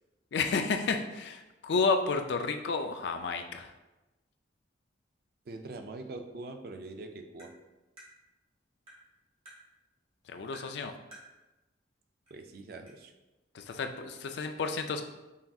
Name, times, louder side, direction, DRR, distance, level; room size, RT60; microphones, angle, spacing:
voice 1, 0.3-3.7 10.3-10.9 13.5-15.0, left 4 dB, 65° left, 6 dB, 0.4 m, -31 dB
voice 2, 5.5-7.5 12.3-13.1, right 2 dB, 50° right, 5 dB, 0.4 m, -43 dB
Tap, 7.4-7.5 8.0-8.1 8.9-9.0 9.5-9.6 10.5-10.7 11.1-11.3 12.3-12.4 12.9-13.0, right 1 dB, 30° right, 1.1 m, -51 dB
5.7 x 2.7 x 2.3 m, 1.1 s
head